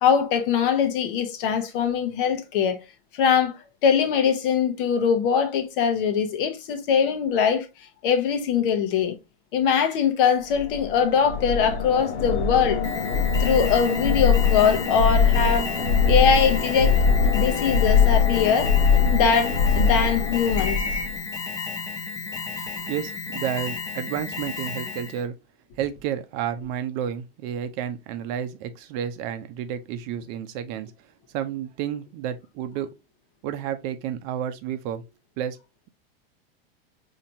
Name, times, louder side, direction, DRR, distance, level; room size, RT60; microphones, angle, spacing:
voice 1, 0.0-2.8 3.1-3.6 3.8-7.7 8.0-9.1 9.5-12.8 13.4-15.7 16.1-17.0 17.3-18.7 19.1-20.9, left 7 dB, 60° left, 1.0 m, -22 dB
sound 1, 10.5-21.2, left 5 dB, 85° left, 0.9 m, -22 dB
Alarm, 12.8-25.2, left 4 dB, 10° left, 0.5 m, -33 dB
voice 2, 22.6-25.3 25.7-30.9 31.3-32.9 33.4-35.0 35.4-35.6, right 9 dB, 45° right, 0.6 m, -31 dB
4.2 x 2.9 x 2.7 m
hypercardioid pair, 115°, 30 cm